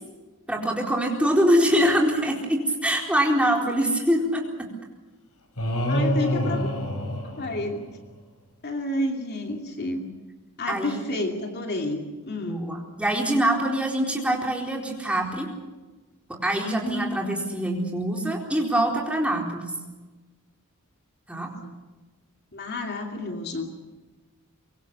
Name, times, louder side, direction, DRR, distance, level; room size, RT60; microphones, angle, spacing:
voice 1, 0.5-4.7 10.7-11.1 12.5-15.5 16.3-19.8 21.3-21.5, right 1 dB, 5° right, 0 dB, 4.2 m, -24 dB
sound 1, 5.6-8.1, equal, 85° left, 5.4 m, -26 dB
voice 2, 5.9-6.7 7.4-7.9 8.6-10.1 10.6-12.7 16.6-17.4 21.4-21.7 22.5-23.7, left 1 dB, 50° left, 3 dB, 2.7 m, -30 dB
24.5 x 22.5 x 7.0 m, 1.2 s
head